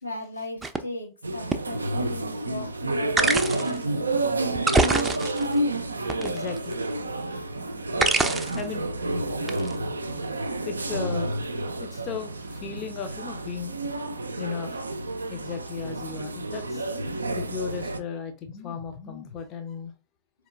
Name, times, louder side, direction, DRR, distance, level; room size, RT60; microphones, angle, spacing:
voice 1, 0.0-4.2, left 1 dB, 85° left, 0.9 m, -38 dB
sound 1, 0.6-0.8 1.5-1.6 3.2-3.8 4.6-5.6 6.1-6.7 8.0-8.6 9.5-9.7, right 3 dB, 10° right, 0.4 m, -24 dB
sound 2, 1.2-18.0, right 2 dB, 80° right, 0.3 m, -30 dB
voice 2, 6.2-6.8 8.5-9.0 10.6-11.4 11.8-13.7 14.4-14.8 15.3-16.9 17.3-19.9, left 7 dB, 35° left, 0.6 m, -35 dB
4.2 x 2.9 x 2.5 m
figure-of-eight pair, 90°, 0 cm